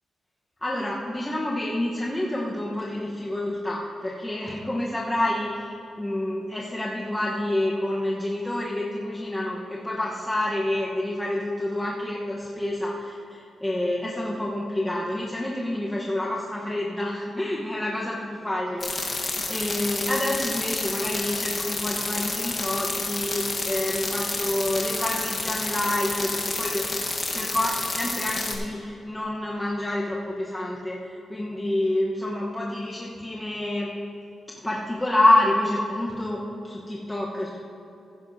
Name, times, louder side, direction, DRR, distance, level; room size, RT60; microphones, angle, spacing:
voice 1, 0.6-26.9 27.1-33.9 34.6-37.6, left 1 dB, 15° left, -4 dB, 1.0 m, -28 dB
sound 1, 18.8-28.6, left 3 dB, 35° left, 1.2 m, -29 dB
15.5 x 10.5 x 2.7 m, 2.8 s
cardioid pair, 100°, 0 cm